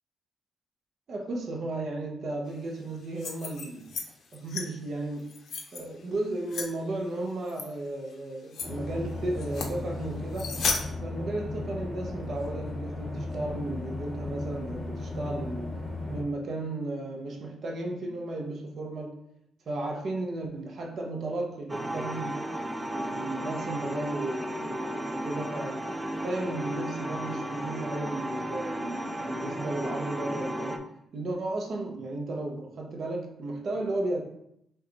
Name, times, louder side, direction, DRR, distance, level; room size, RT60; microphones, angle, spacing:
voice 1, 1.1-4.0 4.3-5.3 5.7-10.6 11.0-15.8 16.1-19.2 19.7-22.4 22.9-25.8 26.2-34.2, right 2 dB, 45° right, 0.7 m, -34 dB
sound 1, 3.0-4.1 4.3-4.6 5.2-5.8 6.5-6.7 7.5-7.7 8.1-8.2 8.5-8.7 9.4-9.7 10.3-10.8, left 5 dB, 55° left, 0.5 m, -33 dB
sound 2, 8.6-16.2, left 2 dB, 20° left, 1.0 m, -36 dB
sound 3, 21.7-30.8, equal, 5° right, 0.3 m, -34 dB
5.6 x 2.3 x 3.9 m
cardioid pair, 155°, 0 cm